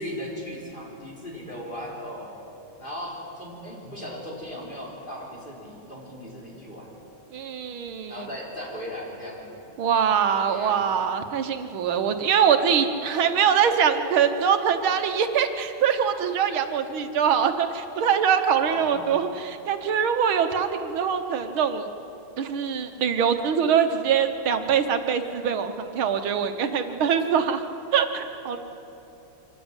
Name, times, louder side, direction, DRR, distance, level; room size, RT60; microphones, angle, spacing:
voice 1, 0.0-2.4 2.8-6.9 8.1-9.7 10.4-11.0 18.6-19.1, equal, 25° left, -4 dB, 4.8 m, -37 dB
voice 2, 7.3-8.3 9.8-21.9 22.4-27.6 27.9-28.6, right 7 dB, 85° right, 7 dB, 2.0 m, -23 dB
25.0 x 15.0 x 9.0 m, 2.9 s
omnidirectional pair, 2.2 m